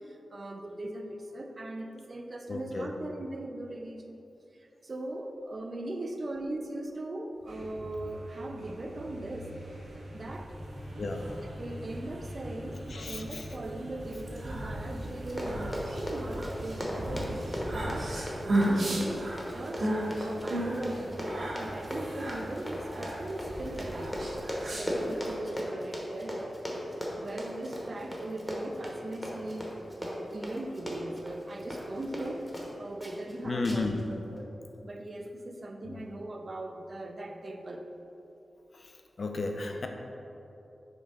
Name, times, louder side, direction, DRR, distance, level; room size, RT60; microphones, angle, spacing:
voice 1, 0.0-4.3 4.6-9.5 10.1-10.6 11.3-24.5 24.7-26.6 27.1-34.5 34.8-37.9, right 1 dB, 35° right, 5 dB, 0.4 m, -39 dB
voice 2, 2.5-2.9 11.0-11.3 12.9-13.4 33.4-34.0 35.8-36.0 39.2-39.9, left 3 dB, 50° left, 4 dB, 0.5 m, -33 dB
sound 1, 7.3-24.5, equal, 85° right, 1.2 m, -44 dB
sound 2, 14.1-25.3, right 1 dB, 55° right, 1.4 m, -34 dB
Run, 15.1-32.7 33.0-33.3 33.6-34.0 34.4-34.5, equal, 10° left, 0.8 m, -37 dB
5.2 x 3.4 x 5.4 m, 2.9 s
wide cardioid pair, 175°, 0 cm